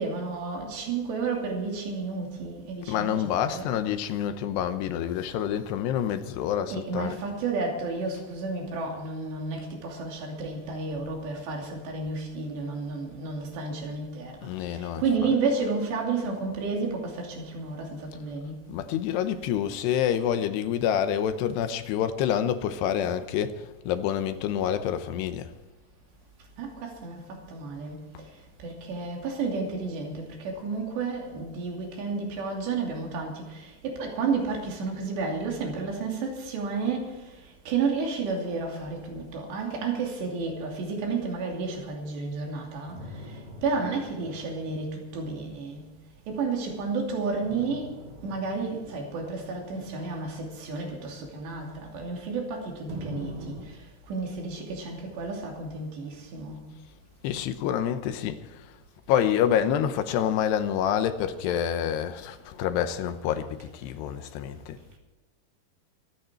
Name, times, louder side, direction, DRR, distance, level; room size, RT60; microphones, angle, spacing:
voice 1, 0.0-3.7 6.7-18.6 26.6-28.1 28.6-43.0 43.3-45.9 46.3-56.7, right 4 dB, 85° right, 5.0 m, -31 dB
voice 2, 2.9-7.2 14.4-15.1 18.7-25.5 57.2-58.7 59.1-64.8, left 9 dB, 80° left, 3.0 m, -27 dB
sound 1, 42.9-46.6 47.4-52.4 52.9-53.7, equal, 45° right, 4.2 m, -44 dB
24.0 x 9.5 x 4.5 m
omnidirectional pair, 4.9 m